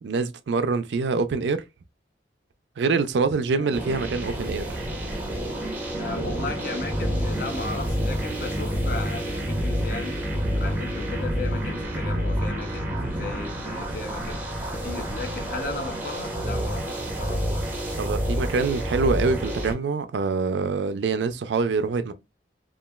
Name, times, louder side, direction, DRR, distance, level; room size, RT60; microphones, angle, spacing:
voice 1, 0.0-1.6 2.8-4.9 18.0-22.1, right 4 dB, 70° right, 0.4 m, -25 dB
sound 1, 3.7-19.7, equal, 10° right, 0.6 m, -28 dB
voice 2, 6.0-10.3 10.6-17.5, left 3 dB, 50° left, 0.5 m, -36 dB
3.0 x 2.3 x 2.2 m
head